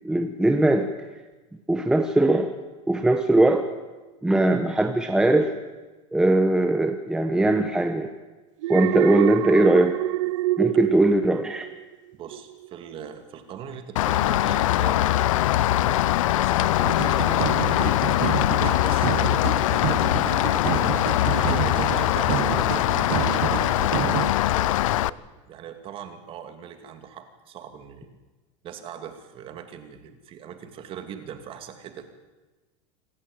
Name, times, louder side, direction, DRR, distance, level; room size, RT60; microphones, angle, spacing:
voice 1, 0.0-0.9 1.7-2.5 2.9-3.6 4.2-5.5 6.1-8.1 8.7-10.0 10.6-11.7, right 2 dB, 5° right, 6 dB, 1.1 m, -20 dB
Alarm, 8.6-11.9 12.3-12.7, right 17 dB, 75° right, 0.6 m, -26 dB
voice 2, 12.1-15.4 15.7-18.0 18.8-19.5 20.3-23.3 24.5-28.1 28.6-32.0, right 8 dB, 35° right, 8 dB, 2.7 m, -40 dB
Rain, 14.0-25.1, left 14 dB, 90° left, 0.7 m, -22 dB
sound 1, 16.8-24.4, right 16 dB, 50° right, 1.0 m, -30 dB
26.5 x 15.0 x 9.1 m, 1.2 s
supercardioid pair, 150°, 16 cm